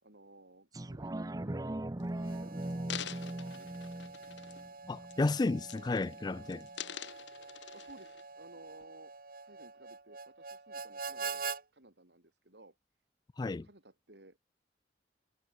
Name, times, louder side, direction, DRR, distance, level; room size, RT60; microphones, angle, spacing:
voice 1, 0.0-1.1 1.4-1.8 2.3-3.8 7.3-9.2 9.4-11.4 11.7-12.8 13.6-14.4, right 2 dB, 70° right, 4.3 m, -58 dB
sound 1, 0.7-5.8 6.2-6.3, right 1 dB, 20° right, 0.7 m, -40 dB
sound 2, 1.7-2.0 2.6-4.7 5.1-5.3 5.6-6.2 6.5-8.2 8.8-8.9, left 10 dB, 85° left, 0.9 m, -45 dB
Harmonica, 2.1-11.6, right 5 dB, 50° right, 2.9 m, -45 dB
voice 2, 4.9-6.7 13.4-13.7, left 3 dB, 25° left, 0.3 m, -32 dB
head